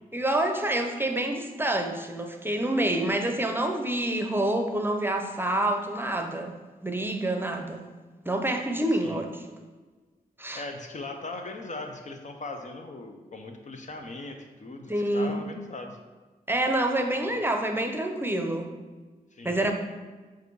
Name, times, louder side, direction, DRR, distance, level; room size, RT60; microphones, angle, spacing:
voice 1, 0.1-6.6 6.8-7.8 8.3-9.4 10.4-10.6 14.9-15.4 16.5-18.7 19.4-19.7, right 1 dB, 15° right, 4 dB, 0.7 m, -27 dB
voice 2, 8.9-9.2 10.5-16.0 17.3-17.4 19.3-19.7, left 2 dB, 55° left, 4 dB, 0.7 m, -39 dB
7.8 x 2.7 x 4.6 m, 1.3 s
cardioid pair, 60°, 15 cm